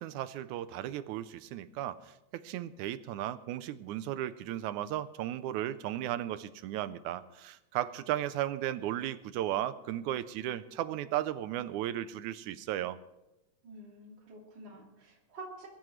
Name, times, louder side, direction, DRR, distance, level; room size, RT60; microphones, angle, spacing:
voice 1, 0.0-13.0, right 12 dB, 80° right, 14 dB, 2.0 m, -35 dB
voice 2, 13.6-15.7, right 2 dB, 40° right, -3 dB, 3.6 m, -48 dB
22.0 x 14.5 x 3.2 m, 0.95 s
omnidirectional pair, 3.5 m